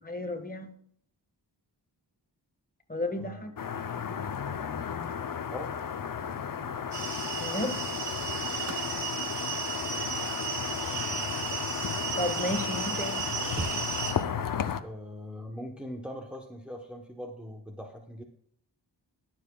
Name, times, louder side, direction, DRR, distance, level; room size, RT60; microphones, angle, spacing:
voice 1, 0.0-0.7 2.9-3.6 7.4-7.8 12.2-13.3, left 1 dB, 20° left, 5 dB, 1.5 m, -33 dB
voice 2, 3.2-3.5 5.5-5.7 14.8-18.2, equal, 5° right, 1 dB, 1.0 m, -41 dB
sound 1, 3.6-14.8, left 7 dB, 50° left, 0.7 m, -34 dB
sound 2, 6.9-14.1, right 7 dB, 70° right, 1.9 m, -35 dB
sound 3, 8.4-12.3 12.9-13.0 13.2-14.5 16.1-16.4, right 2 dB, 35° right, 1.0 m, -45 dB
21.5 x 7.3 x 2.3 m, 0.64 s
wide cardioid pair, 95°, 42 cm